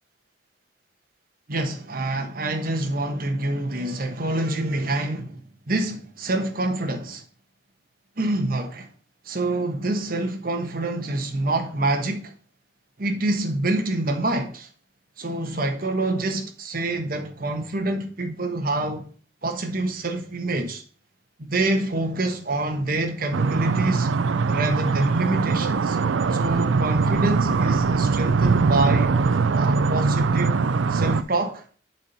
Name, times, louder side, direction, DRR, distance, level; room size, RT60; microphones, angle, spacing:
voice 1, 1.5-7.2 8.2-8.9 9.2-12.3 13.0-14.7 15.2-19.1 19.4-20.8 21.4-24.1 24.5-26.0 26.3-29.1 29.5-30.6 30.9-31.6, right 2 dB, 50° right, 1.1 m, -26 dB
sound 1, 23.3-31.2, right 4 dB, 75° right, 0.5 m, -22 dB
7.2 x 4.3 x 5.4 m
head